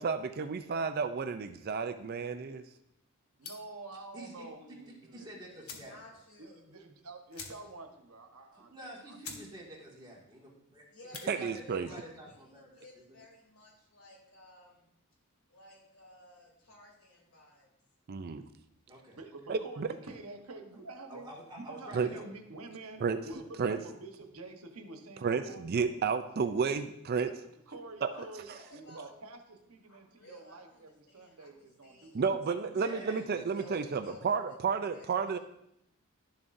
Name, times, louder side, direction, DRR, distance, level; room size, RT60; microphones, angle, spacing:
voice 1, 0.0-2.6 11.3-11.9 18.1-18.5 19.5-19.9 21.9-22.1 23.0-23.2 23.6-23.8 25.2-27.4 28.0-28.1 32.1-35.4, right 5 dB, 45° right, 9 dB, 0.4 m, -31 dB
sound 1, 3.4-3.8 5.1-5.2 5.6-6.0 6.3-6.4 6.7-6.8 7.3-7.9 8.3-8.4 8.8-8.9 9.2-9.5 9.8-10.2 10.9-11.3, left 5 dB, 85° left, 1.3 m, -46 dB
voice 2, 3.4-5.3 5.7-5.8 6.4-9.2 19.1-21.3 21.5-25.7 27.7-32.6, right 2 dB, 90° right, 4 dB, 1.1 m, -48 dB
voice 3, 4.1-4.5 5.1-5.9 8.5-10.8 11.1-12.9 18.9-19.2 19.9-20.0 20.7-20.8 21.1-22.2 23.3-23.4 32.5-33.2, right 1 dB, 20° right, -4 dB, 2.1 m, -48 dB
voice 4, 5.8-6.6 10.9-14.9 15.5-17.7 28.1-29.2 29.8-32.2 32.6-34.6 34.9-35.4, left 1 dB, 65° left, -2 dB, 3.0 m, -56 dB
12.0 x 7.2 x 2.6 m, 0.79 s
head